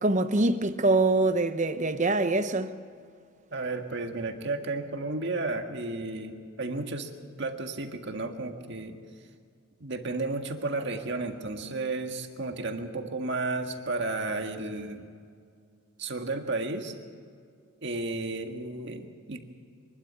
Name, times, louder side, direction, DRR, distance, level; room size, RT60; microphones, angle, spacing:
voice 1, 0.0-2.7, right 2 dB, 35° right, 0.9 m, -24 dB
voice 2, 3.5-7.1 7.4-9.0 9.8-15.0 16.0-16.9 17.8-19.4, right 2 dB, 55° right, 1.8 m, -33 dB
24.0 x 12.5 x 9.8 m
head